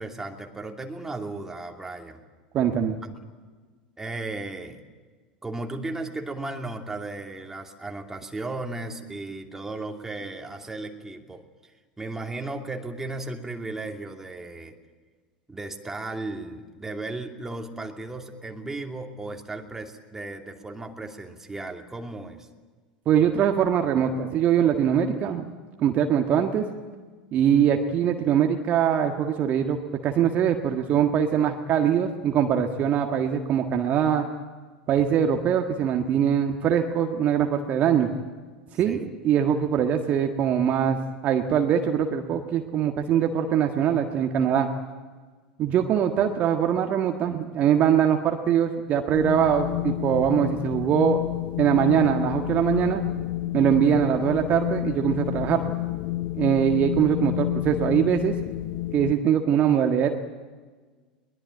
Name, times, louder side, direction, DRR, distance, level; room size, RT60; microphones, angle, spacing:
voice 1, 0.0-2.2 3.0-3.1 4.0-4.8 5.4-11.4 12.0-14.7 15.5-22.5 38.8-39.1, right 2 dB, 10° right, 3 dB, 2.7 m, -35 dB
voice 2, 2.5-3.0 23.0-25.5 25.8-26.7 27.3-34.3 34.9-38.1 38.7-44.7 45.6-51.2 51.6-53.0 53.5-55.6 56.4-58.3 58.9-60.1, right 9 dB, 40° right, 4 dB, 1.6 m, -22 dB
Wind, 49.1-59.1, left 17 dB, 50° left, 0.7 m, -30 dB
22.5 x 21.0 x 9.1 m, 1.4 s
figure-of-eight pair, 80°, 4 cm